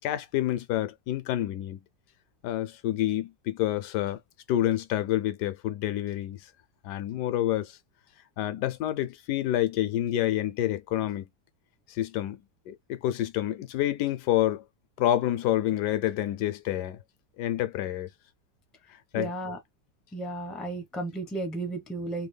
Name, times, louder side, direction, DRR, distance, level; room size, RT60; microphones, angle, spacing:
voice 1, 0.0-1.8 2.4-4.2 4.5-6.4 6.8-7.8 8.4-11.3 11.9-12.4 12.7-14.6 15.0-17.0 17.4-18.1 19.1-19.3, left 13 dB, 85° left, 1.2 m, -28 dB
voice 2, 19.1-19.6 20.1-22.3, right 2 dB, ahead, 0.5 m, -33 dB
3.4 x 2.2 x 3.2 m
omnidirectional pair, 1.7 m